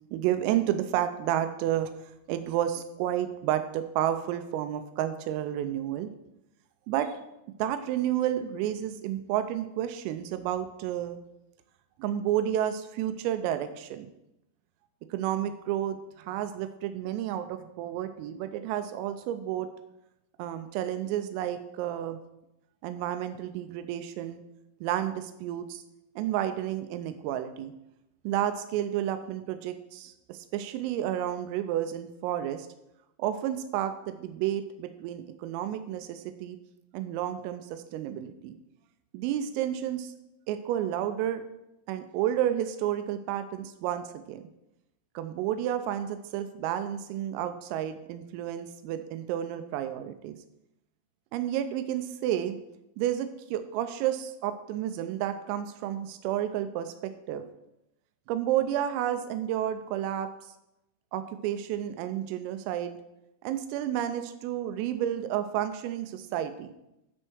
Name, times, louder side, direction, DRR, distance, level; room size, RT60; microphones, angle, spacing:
voice 1, 0.1-1.9 2.3-6.1 6.9-7.1 7.6-11.2 12.0-14.1 15.1-19.7 20.4-22.2 22.8-24.4 24.8-25.8 26.2-27.7 28.2-32.7 33.2-36.6 36.9-38.6 39.1-40.1 40.5-41.4 41.9-44.4 45.2-50.4 51.3-52.6 53.0-57.4 58.3-60.3 61.1-63.0 63.4-66.7, right 11 dB, 90° right, 9 dB, 3.3 m, -31 dB
13.0 x 4.5 x 6.2 m, 0.87 s
omnidirectional pair, 5.9 m